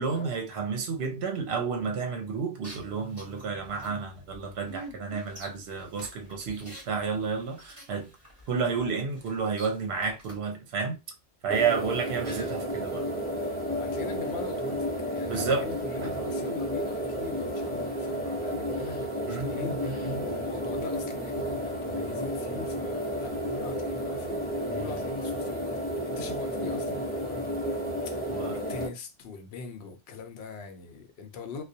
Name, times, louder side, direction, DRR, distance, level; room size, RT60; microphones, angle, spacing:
voice 1, 0.0-8.1 8.5-11.0 11.4-13.1 15.3-15.7 19.3-20.2 24.7-24.9 28.3-28.6, right 5 dB, 75° right, 0.9 m, -31 dB
sound 1, 2.6-10.4, right 1 dB, 15° right, 1.2 m, -48 dB
sound 2, 11.5-28.9, equal, 10° left, 0.6 m, -32 dB
voice 2, 13.8-19.9 20.2-31.6, left 4 dB, 70° left, 0.7 m, -42 dB
2.4 x 2.1 x 2.6 m
omnidirectional pair, 1.1 m